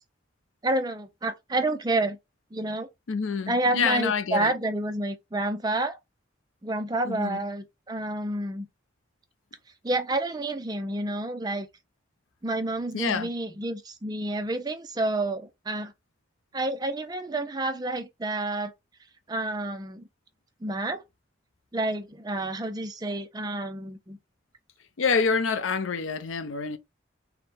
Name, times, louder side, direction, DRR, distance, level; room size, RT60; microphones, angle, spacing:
voice 1, 0.6-2.2 2.5-2.9 3.5-6.0 6.6-8.7 9.8-11.7 12.4-15.9 16.5-18.7 19.3-20.1 20.6-21.0 21.7-24.2, right 2 dB, 20° right, 0.4 m, -29 dB
voice 2, 3.1-4.5 7.0-7.4 12.9-13.3 25.0-26.8, left 5 dB, 90° left, 0.6 m, -27 dB
4.5 x 2.1 x 3.3 m
head